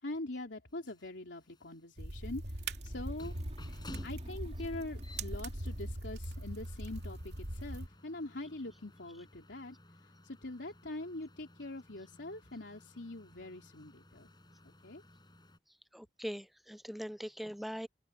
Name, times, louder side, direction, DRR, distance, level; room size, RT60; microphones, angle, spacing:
voice 1, 0.0-3.3 4.0-9.8 10.0-14.3 14.6-15.0, left 2 dB, 85° left, 3.3 m, -43 dB
sound 1, 0.7-15.6, left 1 dB, 25° left, 6.0 m, -57 dB
sound 2, 2.0-7.9, right 1 dB, 70° right, 2.6 m, -41 dB
sound 3, 2.3-6.2, equal, 35° right, 5.0 m, -54 dB
voice 2, 15.9-17.9, equal, ahead, 0.4 m, -41 dB
head